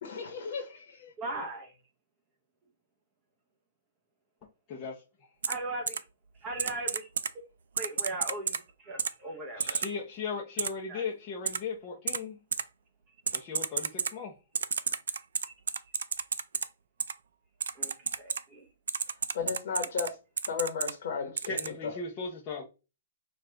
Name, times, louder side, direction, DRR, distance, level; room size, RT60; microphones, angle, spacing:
voice 1, 0.0-1.1 19.3-20.1 20.5-21.5, left 6 dB, 50° left, 1.1 m, -34 dB
voice 2, 1.2-1.8 5.5-6.0 6.4-7.1 7.7-9.8 10.9-11.0 15.4-15.5 17.7-18.7, right 2 dB, 15° right, 0.9 m, -38 dB
voice 3, 4.7-5.0 9.6-12.4 13.3-14.3 21.4-22.6, left 5 dB, 20° left, 0.7 m, -37 dB
Typing, 5.4-5.5 5.9-6.0 6.6-7.3 7.8-8.6 9.0-9.1 9.6-9.9 10.6-10.7 11.5-11.6 12.1-12.2 12.5-12.6 13.3-14.1 14.5-16.6 17.0-17.1 17.6-18.4 18.9-20.1 20.4-20.9 21.4-21.7, right 6 dB, 80° right, 0.3 m, -30 dB
5.0 x 2.4 x 3.3 m
hypercardioid pair, 170°, 0 cm